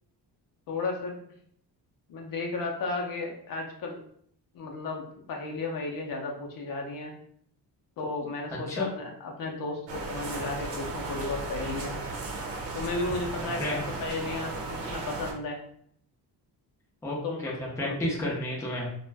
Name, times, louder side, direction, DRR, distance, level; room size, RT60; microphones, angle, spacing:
voice 1, 0.7-1.2 2.1-4.0 4.5-7.1 8.0-12.0 12.8-15.6 17.1-17.4 17.8-18.0, left 3 dB, 55° left, 0 dB, 0.6 m, -34 dB
sound 1, 9.9-15.3, right 3 dB, 80° right, 0.8 m, -35 dB
voice 2, 17.0-18.9, left 1 dB, 5° left, -4 dB, 0.5 m, -31 dB
2.4 x 2.1 x 3.2 m, 0.65 s
cardioid pair, 175°, 41 cm